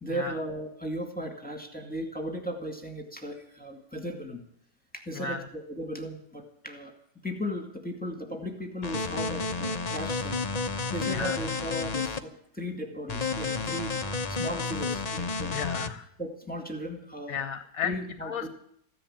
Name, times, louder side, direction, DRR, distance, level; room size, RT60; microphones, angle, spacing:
voice 1, 0.0-4.4 4.9-6.9 7.2-10.4 10.9-13.9 14.3-15.6 16.2-17.4 17.8-18.5, equal, 5° left, 3 dB, 2.0 m, -36 dB
voice 2, 5.1-5.4 11.1-11.4 15.5-16.1 17.3-18.5, left 7 dB, 60° left, 9 dB, 1.3 m, -34 dB
sound 1, 8.8-12.2 13.1-15.9, left 4 dB, 40° left, 0.5 m, -31 dB
15.0 x 10.5 x 8.8 m, 0.70 s
omnidirectional pair, 1.9 m